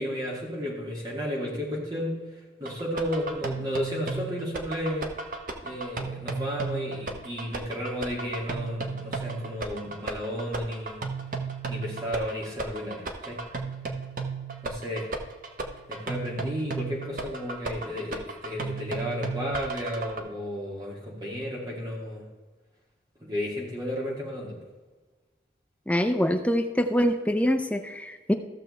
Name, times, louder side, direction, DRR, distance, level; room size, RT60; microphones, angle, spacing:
voice 1, 0.0-2.2 2.6-5.1 5.6-11.0 11.7-13.4 14.6-15.1 15.9-22.3 23.2-24.6, equal, 20° right, -3 dB, 2.3 m, -33 dB
sound 1, 2.7-20.2, right 4 dB, 50° right, 0.9 m, -35 dB
voice 2, 25.9-28.3, equal, 5° left, 6 dB, 0.5 m, -24 dB
14.5 x 6.6 x 3.2 m, 1.3 s
head